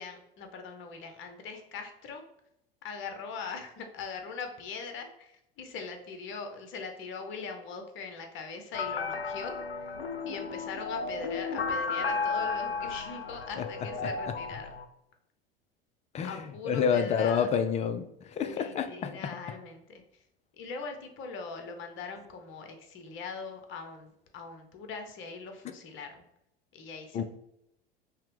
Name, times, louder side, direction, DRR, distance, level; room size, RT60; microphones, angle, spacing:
voice 1, 0.0-2.2 2.8-9.9 10.2-14.7 16.2-17.5 18.4-20.2 20.6-26.2 26.7-27.2, left 4 dB, 40° left, 5 dB, 0.8 m, -41 dB
When the Wolves Cry, 8.7-14.8, left 4 dB, 85° left, 0.5 m, -34 dB
voice 2, 16.1-19.3 27.1-27.2, left 7 dB, 25° left, 9 dB, 0.3 m, -29 dB
5.5 x 2.1 x 3.4 m, 0.80 s
figure-of-eight pair, 75°, 29 cm